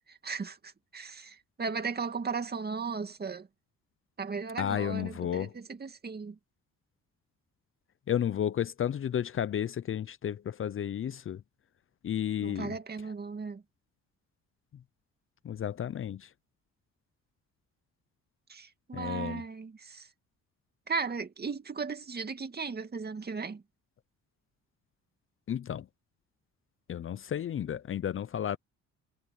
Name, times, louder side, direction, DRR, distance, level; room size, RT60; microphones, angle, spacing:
voice 1, 0.1-3.5 4.2-6.4 12.4-13.6 18.5-20.1 20.9-23.6, right 5 dB, 30° right, 2.2 m, -36 dB
voice 2, 4.6-5.5 8.1-11.4 12.0-12.7 15.4-16.3 18.9-19.4 25.5-25.8 26.9-28.6, left 9 dB, 45° left, 0.6 m, -32 dB
cardioid pair, 90°, 30 cm